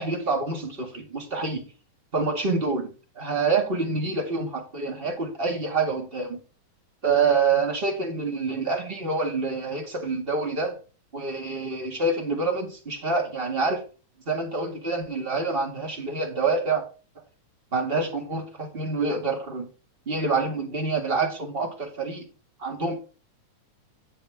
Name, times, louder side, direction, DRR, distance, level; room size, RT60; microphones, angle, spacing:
voice 1, 0.0-1.6 2.1-6.4 7.0-10.7 11.1-13.8 14.2-16.8 17.1-17.2 17.7-19.7 20.0-22.3 22.6-23.0, right 4 dB, 20° right, 1.6 m, -27 dB
9.8 x 8.0 x 3.5 m
omnidirectional pair, 3.8 m